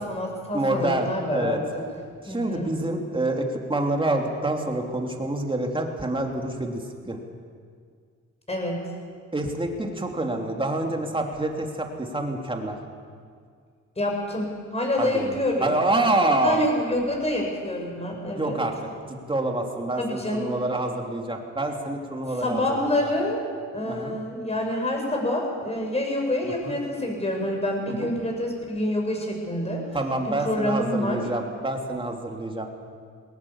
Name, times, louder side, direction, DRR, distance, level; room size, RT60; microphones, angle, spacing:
voice 1, 0.0-1.6 2.3-2.7 8.5-8.8 14.0-15.7 16.4-18.6 20.0-20.5 22.4-23.4 23.7-29.8 30.3-31.2, left 1 dB, 20° left, 1 dB, 7.0 m, -27 dB
voice 2, 0.5-1.6 2.2-7.2 9.3-12.8 15.0-15.4 15.6-16.7 18.3-18.7 19.3-22.9 23.8-24.2 26.4-26.7 28.0-28.1 29.9-32.7, right 2 dB, 15° right, 2 dB, 3.1 m, -27 dB
20.5 x 18.5 x 7.4 m, 2.1 s
cardioid pair, 90°, 30 cm